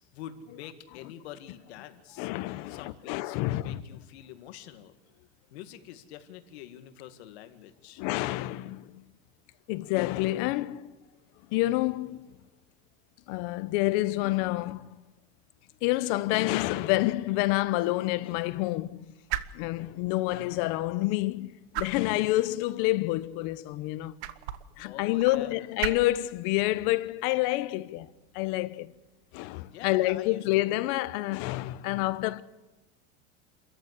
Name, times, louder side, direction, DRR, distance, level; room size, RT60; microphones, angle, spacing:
voice 1, 0.1-2.3 2.7-5.0 5.5-8.0 24.8-25.6 29.7-30.8, left 11 dB, 80° left, 2.1 m, -46 dB
voice 2, 2.2-3.8 8.0-9.0 9.7-10.9 11.5-12.3 13.3-14.8 15.8-19.1 19.5-24.2 24.8-28.1 28.3-28.9 29.3-32.4, left 18 dB, 55° left, 0.9 m, -28 dB
sound 1, 16.3-29.8, right 12 dB, 85° right, 1.2 m, -42 dB
27.0 x 14.5 x 8.3 m
supercardioid pair, 160°, 32 cm